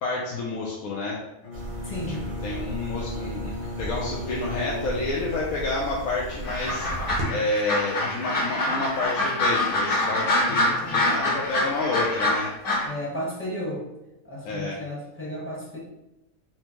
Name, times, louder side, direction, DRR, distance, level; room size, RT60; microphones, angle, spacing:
voice 1, 0.0-1.2 2.1-2.2 2.4-3.5 3.8-12.5 14.4-14.8, left 2 dB, 85° left, -3 dB, 1.0 m, -29 dB
Bowed string instrument, 1.4-5.6, left 1 dB, 65° left, 0.5 m, -37 dB
sound 1, 1.5-7.2, right 1 dB, 75° right, 1.4 m, -36 dB
voice 2, 1.8-2.3 10.4-11.0 12.8-13.8 14.2-15.8, equal, 10° left, -6 dB, 0.9 m, -34 dB
sound 2, 6.4-12.9, left 1 dB, 50° left, 0.9 m, -25 dB
4.2 x 2.1 x 3.0 m, 0.93 s
omnidirectional pair, 1.4 m